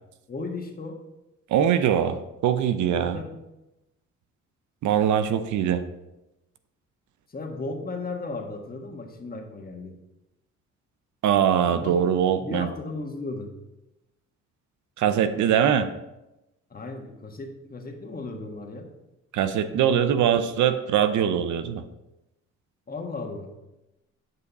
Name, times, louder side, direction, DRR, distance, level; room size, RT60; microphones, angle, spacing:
voice 1, 0.3-1.0 2.9-3.4 7.3-10.0 11.7-11.9 12.4-13.5 16.7-18.9 19.7-20.3 22.9-23.5, left 3 dB, 30° left, 2 dB, 1.6 m, -35 dB
voice 2, 1.5-3.2 4.8-5.8 11.2-12.7 15.0-15.9 19.3-21.8, right 9 dB, 75° right, 11 dB, 0.7 m, -22 dB
9.1 x 5.4 x 4.1 m, 0.96 s
cardioid pair, 90°, 30 cm